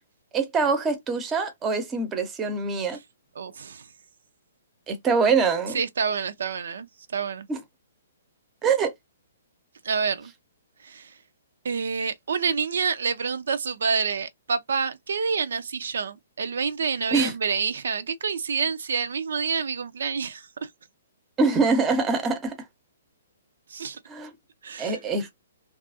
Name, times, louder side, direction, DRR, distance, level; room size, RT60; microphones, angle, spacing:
voice 1, 0.3-3.0 4.9-5.8 7.5-7.6 8.6-8.9 17.1-17.3 21.4-22.6 24.1-24.3 24.8-25.3, right 4 dB, 15° right, 0.6 m, -24 dB
voice 2, 3.4-3.8 5.7-6.9 7.1-7.5 9.8-10.3 10.8-11.1 11.6-20.7 23.7-24.0 24.6-25.0, right 5 dB, 75° right, 0.4 m, -28 dB
2.6 x 2.4 x 2.6 m
hypercardioid pair, 150°, 0 cm